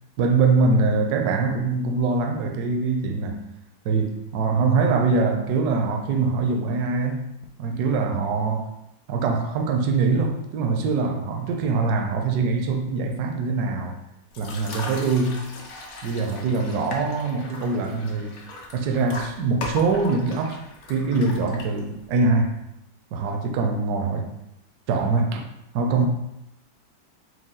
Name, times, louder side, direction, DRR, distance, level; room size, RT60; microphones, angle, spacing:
voice 1, 0.2-3.4 3.8-7.3 7.6-8.7 9.1-14.0 14.4-15.4 16.0-18.3 18.7-20.6 20.9-22.5 23.1-24.3 24.9-25.5 25.7-26.1, right 4 dB, 75° right, 1.0 m, -23 dB
sound 1, 14.3-22.1, left 2 dB, 65° left, 0.7 m, -38 dB
4.8 x 2.2 x 3.7 m
omnidirectional pair, 1.9 m